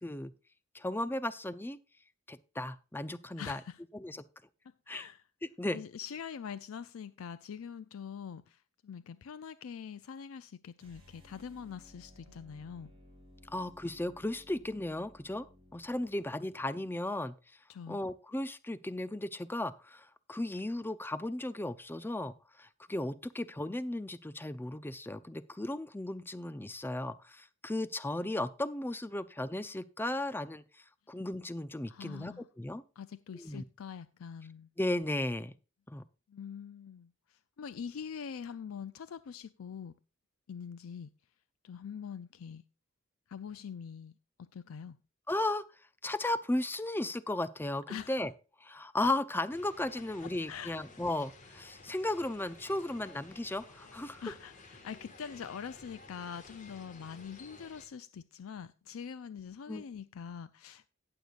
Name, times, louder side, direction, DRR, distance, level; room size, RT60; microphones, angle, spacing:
voice 1, 0.0-0.3 0.7-1.8 2.3-3.6 3.9-4.2 4.9-5.1 5.6-5.8 13.5-15.5 15.7-17.4 17.9-22.3 22.6-30.6 31.1-32.8 33.3-33.6 34.8-35.5 35.9-36.0 45.3-45.6 46.0-48.3 48.6-54.2 59.7-59.8, left 1 dB, 10° left, 0.5 m, -35 dB
voice 2, 3.4-3.8 4.9-5.2 5.7-12.9 17.7-18.0 31.9-32.5 33.0-34.7 36.3-39.9 40.5-41.1 41.6-42.6 43.3-44.1 44.4-45.0 47.9-48.1 50.2-50.8 54.2-54.5 54.8-60.9, left 7 dB, 80° left, 0.4 m, -44 dB
sound 1, 10.8-17.0, left 1 dB, 25° right, 5.3 m, -58 dB
sound 2, 49.5-57.9, left 3 dB, 40° left, 1.7 m, -54 dB
18.5 x 6.7 x 2.4 m
head